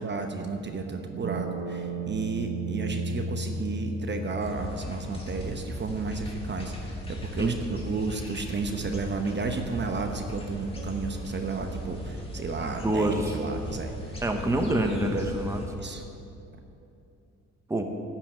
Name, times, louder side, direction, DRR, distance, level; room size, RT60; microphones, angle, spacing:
voice 1, 0.0-14.2 15.7-16.1, right 4 dB, 35° right, 5 dB, 0.9 m, -33 dB
sound 1, 1.2-15.3, right 2 dB, 90° right, 1.0 m, -39 dB
sound 2, 4.4-15.7, equal, 20° left, 1.9 m, -38 dB
voice 2, 12.6-13.3 14.2-15.6 17.7-17.8, right 1 dB, 10° right, 4 dB, 0.9 m, -26 dB
10.5 x 5.7 x 8.6 m, 2.7 s
cardioid pair, 90°, 30 cm